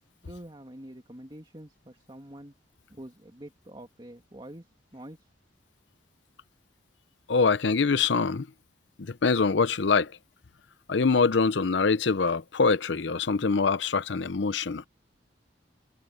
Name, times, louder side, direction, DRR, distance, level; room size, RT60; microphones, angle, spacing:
voice 1, 0.2-2.5 2.9-5.3, right 1 dB, 25° right, 2.5 m, -46 dB
voice 2, 7.3-8.5 9.0-10.1 10.9-14.9, left 4 dB, 70° left, 0.7 m, -24 dB
head